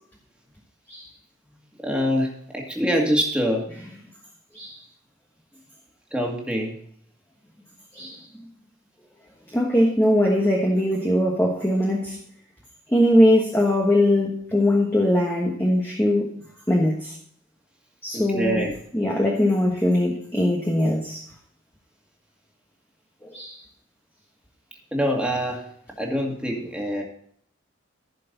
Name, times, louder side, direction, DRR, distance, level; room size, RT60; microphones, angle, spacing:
voice 1, 1.8-3.7 6.1-6.7 18.1-18.7 24.9-25.6 26.0-27.0, equal, 5° right, -1 dB, 2.1 m, -25 dB
voice 2, 9.5-12.2 12.9-16.3 16.7-17.1 18.0-18.6 18.9-21.2 23.2-23.6, left 1 dB, 10° left, -1 dB, 1.4 m, -21 dB
15.0 x 6.7 x 4.0 m, 0.64 s
head